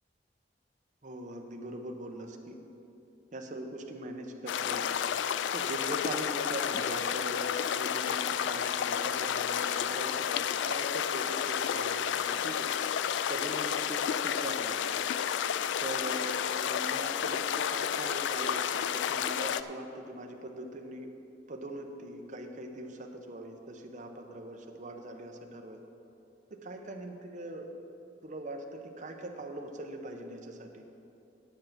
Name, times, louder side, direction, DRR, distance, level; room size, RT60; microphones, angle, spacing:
voice 1, 1.0-2.5 3.3-5.0 5.5-12.7 13.3-14.7 15.8-21.1 21.5-25.8 26.5-27.7 28.2-30.8, right 1 dB, 45° right, 3 dB, 0.8 m, -41 dB
sound 1, 4.5-19.6, left 8 dB, 85° left, 0.3 m, -31 dB
10.0 x 7.9 x 5.7 m, 2.8 s
head